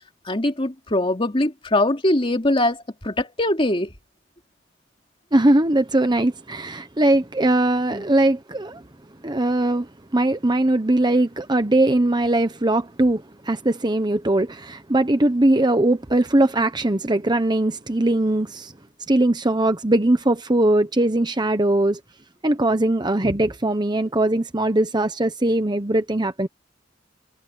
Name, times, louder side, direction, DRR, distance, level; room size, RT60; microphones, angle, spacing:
voice 1, 0.2-3.9 7.9-8.0, left 1 dB, 30° left, 2.9 m, -22 dB
voice 2, 5.3-8.8 9.2-18.7 19.1-22.0 22.4-26.5, right 1 dB, 25° right, 1.1 m, -20 dB
head